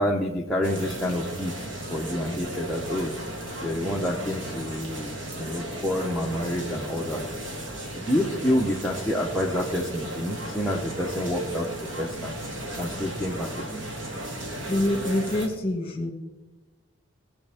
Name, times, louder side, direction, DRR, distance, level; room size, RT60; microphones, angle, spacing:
voice 1, 0.0-3.1 3.6-7.2 7.9-11.7 12.0-12.3 12.8-13.9, equal, ahead, -5 dB, 0.9 m, -28 dB
sound 1, 0.6-15.5, right 1 dB, 65° right, 1.7 m, -35 dB
voice 2, 14.7-16.1, left 1 dB, 25° left, 2 dB, 2.1 m, -26 dB
18.0 x 7.9 x 3.5 m, 1.1 s
head